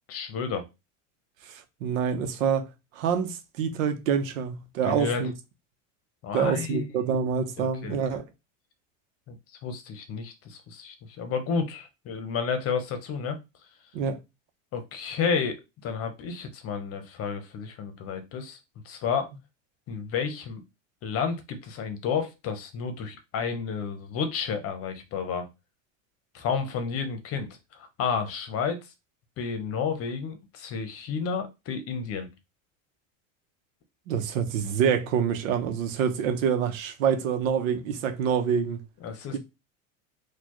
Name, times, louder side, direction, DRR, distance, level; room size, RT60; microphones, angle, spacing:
voice 1, 0.1-0.6 4.8-5.2 6.2-6.8 7.6-8.0 9.3-9.4 9.6-13.4 14.7-18.6 18.8-19.3 19.9-20.6 21.0-25.5 26.3-28.8 29.4-32.3 39.0-39.4, left 6 dB, 35° left, 0.8 m, -31 dB
voice 2, 1.5-2.7 3.0-5.3 6.3-8.2 13.9-14.2 34.1-38.8 39.3-39.4, right 7 dB, 80° right, 0.9 m, -26 dB
4.2 x 2.3 x 3.0 m
supercardioid pair, 135°, 39 cm